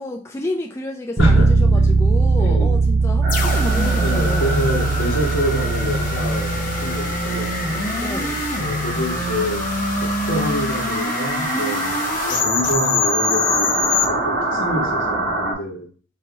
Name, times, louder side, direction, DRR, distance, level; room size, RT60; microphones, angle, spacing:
voice 1, 0.0-4.6 8.0-8.4, left 1 dB, 15° left, 0.4 m, -30 dB
voice 2, 1.2-1.5 2.4-2.8 4.0-7.6 8.6-9.6 10.0-12.1 12.4-15.9, equal, 75° left, 1.4 m, -27 dB
Bass guitar, 1.2-10.9, right 3 dB, 40° right, 0.7 m, -21 dB
sound 1, 3.2-15.5, right 2 dB, 65° right, 1.7 m, -26 dB
sound 2, 3.3-14.1, left 3 dB, 40° left, 0.8 m, -25 dB
4.8 x 2.9 x 3.4 m
head